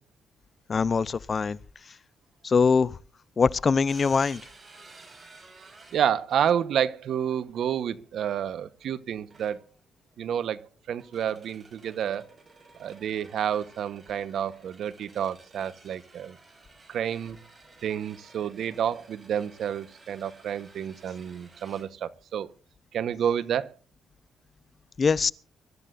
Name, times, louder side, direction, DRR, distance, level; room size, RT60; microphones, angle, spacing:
voice 1, 0.7-1.6 2.4-3.0 3.4-4.4 25.0-25.3, left 5 dB, 40° left, 0.7 m, -22 dB
sound 1, 3.9-6.8 8.0-8.3 9.3-9.9 10.9-21.8, right 3 dB, 30° right, 5.9 m, -53 dB
voice 2, 5.9-9.6 10.2-12.2 12.8-16.4 16.9-17.4 17.8-22.5 22.9-23.7, right 9 dB, 70° right, 1.1 m, -29 dB
24.0 x 13.5 x 2.6 m
cardioid pair, 90°, 0 cm